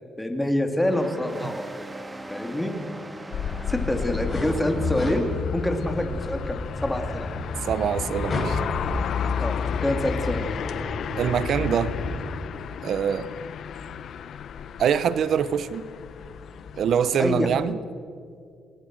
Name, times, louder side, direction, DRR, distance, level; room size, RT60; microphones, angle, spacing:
voice 1, 0.2-1.6 2.3-2.8 3.7-5.2 5.5-7.3 9.4-10.5 17.2-17.5, left 1 dB, 10° left, 4 dB, 3.0 m, -26 dB
sound 1, 0.8-5.9, right 1 dB, 15° right, 2.0 m, -39 dB
sound 2, 3.3-17.7, left 7 dB, 65° left, 0.9 m, -33 dB
sound 3, 3.7-12.2, left 2 dB, 35° left, 7.4 m, -32 dB
voice 2, 7.6-8.6 11.2-11.9 12.8-13.3 14.8-15.8 16.8-17.8, right 8 dB, 65° right, 16 dB, 1.0 m, -24 dB
27.5 x 20.0 x 6.4 m, 2.3 s
cardioid pair, 90°, 0 cm